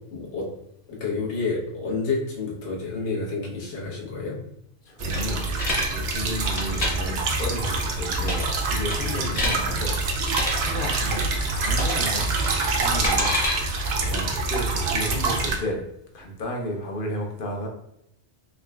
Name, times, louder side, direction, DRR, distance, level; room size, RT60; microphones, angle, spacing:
voice 1, 0.1-0.5 0.9-4.4 9.0-9.3, left 4 dB, 75° left, -3 dB, 1.3 m, -29 dB
voice 2, 4.9-5.5 5.9-10.0 10.5-12.3 12.7-13.3 14.0-15.8 16.1-17.7, equal, 55° left, 2 dB, 0.8 m, -33 dB
sound 1, 5.0-15.6, right 3 dB, 65° right, 0.8 m, -26 dB
sound 2, 5.1-5.9 6.4-6.9 8.2-8.6 8.9-9.6 10.3-10.5 11.7-12.1 12.3-13.5, left 1 dB, 35° left, 1.0 m, -26 dB
3.7 x 3.3 x 2.3 m, 0.76 s
omnidirectional pair, 1.2 m